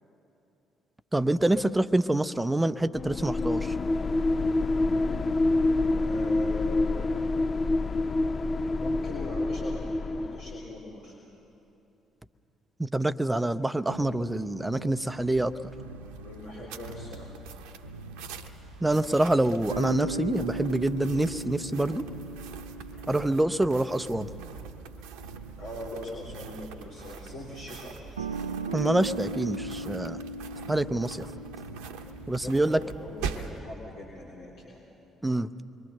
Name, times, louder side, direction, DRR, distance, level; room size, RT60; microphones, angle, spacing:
voice 1, 1.1-3.8 12.8-15.5 18.8-22.0 23.1-24.3 28.7-30.2 30.7-31.3 32.3-32.8 35.2-35.5, right 1 dB, 10° right, 11 dB, 0.7 m, -26 dB
sound 1, 2.9-10.7, left 2 dB, 40° left, 0.7 m, -27 dB
voice 2, 5.9-7.1 8.8-11.2 16.2-17.3 22.0-22.1 23.0-23.1 25.6-28.3 32.2-34.8, left 2 dB, 65° left, -5 dB, 3.2 m, -41 dB
sound 2, 13.9-32.6, right 2 dB, 85° right, 0.5 m, -39 dB
sound 3, 15.2-33.6, right 7 dB, 70° right, 1.0 m, -43 dB
26.5 x 22.5 x 6.6 m, 2.9 s
figure-of-eight pair, 45°, 0 cm